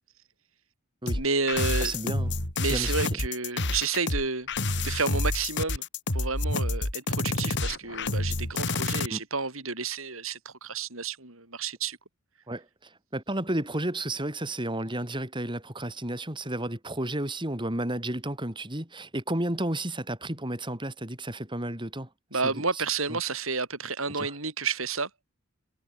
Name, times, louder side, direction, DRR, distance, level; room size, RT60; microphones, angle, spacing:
sound 1, 1.1-9.1, left 2 dB, 55° left, 5.5 m, -28 dB
voice 1, 1.1-1.9 2.6-4.5 4.8-5.8 6.1-12.0 22.3-25.1, right 4 dB, 75° right, 7.9 m, -30 dB
voice 2, 1.8-2.3 2.7-2.9 9.1-9.2 12.5-12.6 13.1-22.1 24.2-24.3, right 1 dB, 25° right, 5.1 m, -32 dB
head